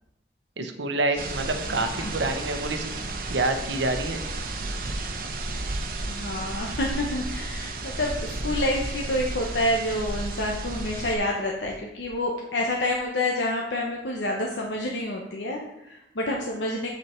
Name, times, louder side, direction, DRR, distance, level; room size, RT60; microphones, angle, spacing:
voice 1, 0.6-2.8 3.3-4.2, right 2 dB, 85° right, 7 dB, 0.9 m, -27 dB
sound 1, 1.2-11.2, right 2 dB, 50° right, 0.9 m, -33 dB
voice 2, 1.7-2.2 5.6-5.8 6.0-16.9, left 1 dB, 85° left, -1 dB, 1.0 m, -28 dB
7.7 x 6.0 x 4.5 m, 0.85 s
head